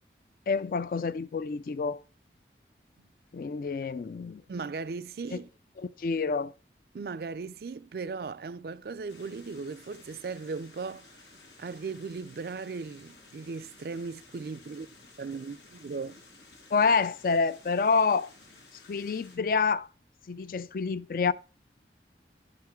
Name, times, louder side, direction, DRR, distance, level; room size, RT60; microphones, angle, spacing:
voice 1, 0.5-2.0 3.3-4.4 5.3-5.4 5.8-6.5 16.7-18.3 18.9-19.9 20.3-21.3, left 4 dB, 50° left, 0.4 m, -27 dB
voice 2, 4.5-5.5 6.9-11.1 11.6-14.9 15.2-16.2, right 4 dB, 60° right, 0.4 m, -37 dB
sound 1, 9.1-19.4, left 3 dB, 85° left, 2.1 m, -54 dB
10.5 x 5.8 x 4.4 m
head